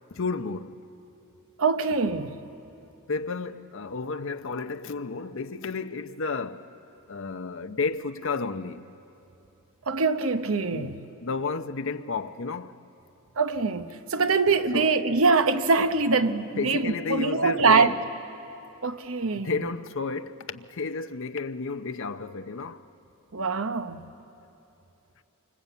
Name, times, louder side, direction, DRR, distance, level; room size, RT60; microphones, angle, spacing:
voice 1, 0.1-0.8 3.1-6.7 7.1-8.9 10.7-10.9 11.2-12.7 14.7-14.9 16.6-18.0 19.3-22.8, left 4 dB, 60° left, 0.7 m, -32 dB
voice 2, 1.6-2.3 9.9-11.1 13.4-18.0 18.8-19.7 23.3-24.1, right 4 dB, 70° right, 0.9 m, -24 dB
27.0 x 25.0 x 8.2 m
head